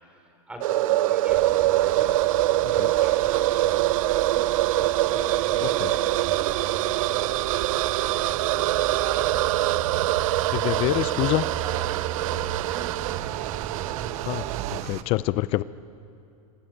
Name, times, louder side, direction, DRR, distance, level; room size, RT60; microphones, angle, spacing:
voice 1, 0.0-8.8 11.8-13.5, equal, 5° right, 3 dB, 4.7 m, -45 dB
sound 1, 0.6-14.8, right 16 dB, 60° right, 0.5 m, -24 dB
sound 2, 1.3-15.0, right 9 dB, 35° right, 1.3 m, -36 dB
voice 2, 10.5-11.5 14.3-15.6, left 17 dB, 30° left, 17 dB, 0.5 m, -26 dB
27.0 x 25.0 x 8.0 m, 2.7 s
supercardioid pair, 150°, 19 cm